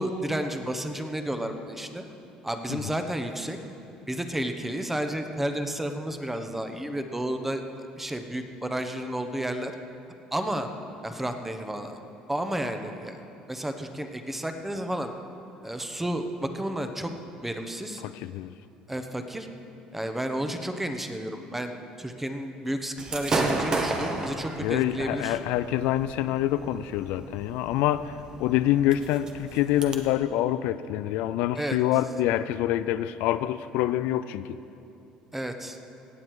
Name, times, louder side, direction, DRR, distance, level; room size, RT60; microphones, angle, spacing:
voice 1, 0.0-2.0 2.4-3.6 4.1-9.7 10.3-10.7 11.0-12.0 12.3-13.2 13.5-15.1 15.6-17.1 17.4-18.0 18.9-19.5 19.9-25.4 31.6-31.8 35.3-35.8, right 1 dB, 10° right, 6 dB, 1.0 m, -31 dB
voice 2, 18.0-18.5 24.6-34.6, left 13 dB, 80° left, 13 dB, 0.4 m, -26 dB
Gunshot gunfire / Fireworks, 23.0-30.0, right 3 dB, 30° right, 1.3 m, -33 dB
18.0 x 7.6 x 4.8 m, 2.7 s
supercardioid pair, 85°, 2 cm